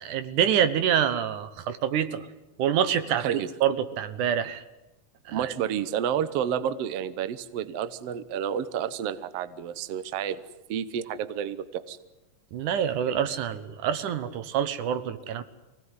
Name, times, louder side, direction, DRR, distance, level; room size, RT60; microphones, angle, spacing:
voice 1, 0.0-2.3 2.6-3.2 3.6-4.6 5.4-5.5 12.5-15.4, right 9 dB, 80° right, 12 dB, 2.6 m, -26 dB
voice 2, 3.1-3.5 5.3-10.4 10.7-12.0, right 9 dB, 65° right, 13 dB, 1.8 m, -30 dB
24.5 x 18.0 x 9.7 m, 0.99 s
omnidirectional pair, 3.5 m